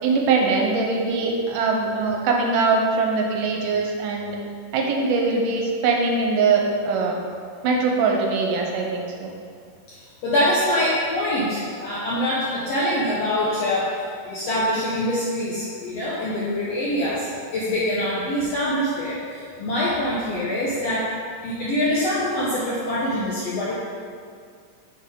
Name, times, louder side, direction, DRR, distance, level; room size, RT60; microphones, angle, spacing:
voice 1, 0.0-4.4 4.7-7.2 7.6-9.3, right 4 dB, 80° right, 0 dB, 2.2 m, -22 dB
voice 2, 10.0-21.1 21.4-23.7, left 1 dB, 75° left, -7 dB, 1.5 m, -24 dB
6.0 x 5.7 x 3.7 m, 2.1 s
omnidirectional pair, 3.9 m